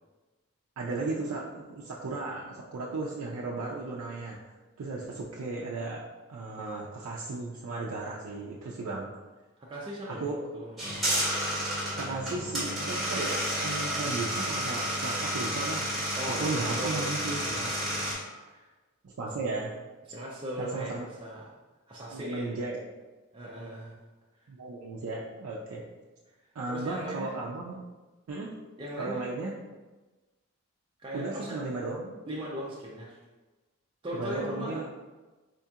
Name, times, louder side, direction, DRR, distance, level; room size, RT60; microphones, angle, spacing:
voice 1, 0.8-4.4 4.8-9.1 10.1-10.4 12.0-17.4 19.0-19.8 20.6-21.0 22.1-22.8 24.5-25.8 26.6-27.8 28.3-28.6 29.0-29.5 31.1-32.2 34.2-34.9, right 3 dB, 85° right, -3 dB, 0.4 m, -35 dB
voice 2, 9.6-11.1 16.1-18.7 20.1-21.5 21.9-22.6 23.3-24.0 26.7-27.3 28.8-29.2 31.0-31.6 32.3-33.2 34.0-34.8, equal, 25° right, -5 dB, 0.4 m, -39 dB
sound 1, 10.8-18.1, equal, ahead, 1.3 m, -31 dB
4.3 x 2.8 x 2.3 m, 1.2 s
head